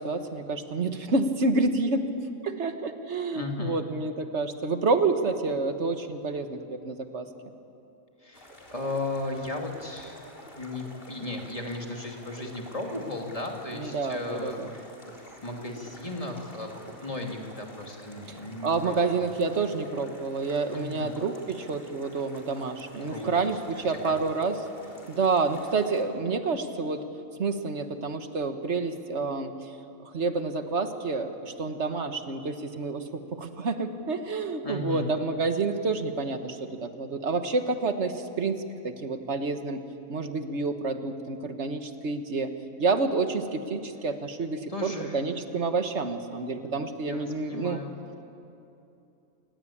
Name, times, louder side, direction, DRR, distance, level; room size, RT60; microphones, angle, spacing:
voice 1, 0.0-7.3 13.7-14.7 18.3-24.6 25.1-27.1 27.4-29.5 30.0-39.8 40.1-42.5 42.8-47.8, right 3 dB, 55° right, 7 dB, 1.6 m, -29 dB
voice 2, 3.3-3.8 8.2-10.2 10.6-14.9 15.4-19.3 20.7-21.2 23.0-23.6 23.9-24.2 34.6-35.1 44.7-45.2 47.0-47.9, left 2 dB, 25° left, 1 dB, 2.8 m, -35 dB
sound 1, 8.3-26.0, left 1 dB, 40° left, 4.0 m, -49 dB
28.5 x 19.0 x 8.6 m, 2.7 s
omnidirectional pair, 1.5 m